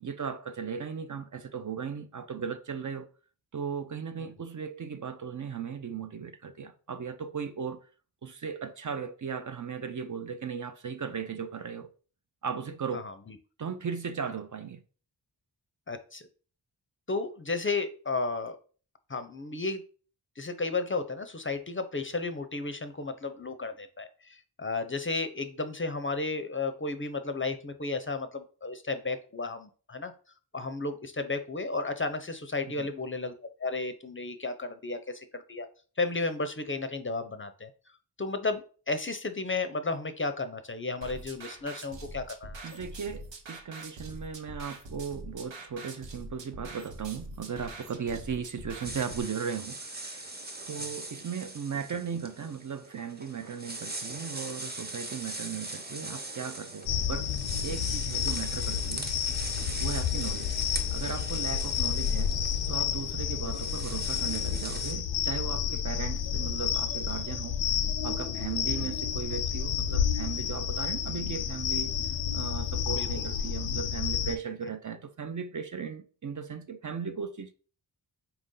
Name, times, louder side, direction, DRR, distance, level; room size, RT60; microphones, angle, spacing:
voice 1, 0.0-3.1 3.5-7.9 8.2-11.9 12.4-13.1 13.6-14.8 32.6-32.8 42.6-50.4 50.7-57.3 57.6-59.1 59.8-60.5 60.9-62.3 62.7-67.6 68.0-71.9 72.3-77.5, right 6 dB, 45° right, 0.5 m, -37 dB
voice 2, 15.9-16.3 17.1-18.6 19.1-19.8 20.4-30.1 30.5-35.7 36.0-37.7 38.2-42.6 63.4-63.6 68.7-68.9 72.9-73.3, left 3 dB, 30° left, 0.5 m, -33 dB
sound 1, 41.0-49.2, right 2 dB, 75° right, 0.9 m, -44 dB
sound 2, 48.8-64.9, right 2 dB, 20° right, 0.9 m, -41 dB
sound 3, 56.9-74.4, left 8 dB, 75° left, 0.5 m, -30 dB
4.4 x 2.6 x 3.7 m
cardioid pair, 40°, 44 cm